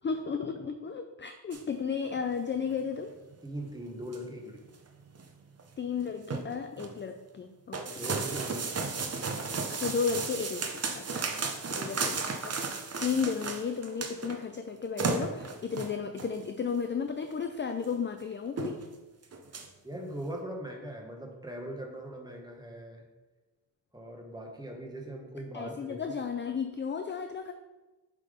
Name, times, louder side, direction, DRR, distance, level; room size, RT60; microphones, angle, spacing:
voice 1, 0.0-3.1 5.8-8.1 9.7-18.8 25.5-27.5, left 6 dB, 30° left, 6 dB, 0.4 m, -34 dB
sound 1, 1.5-1.6 2.2-2.3 2.6-2.7 3.3-3.4 3.8-4.3 4.7-4.9 5.1-5.2 5.6-5.7 6.0-7.0 7.7-14.4 14.7-14.8 15.0-16.4 17.2-17.3 17.8-17.9 18.2-18.3 18.6-18.9 19.2-19.7, right 4 dB, 35° right, 0.7 m, -34 dB
voice 2, 3.4-4.6 7.7-8.9 11.3-11.5 19.8-23.1 23.9-26.2, right 1 dB, 10° right, 0 dB, 1.2 m, -41 dB
7.5 x 3.7 x 5.0 m, 1.2 s
wide cardioid pair, 130°, 42 cm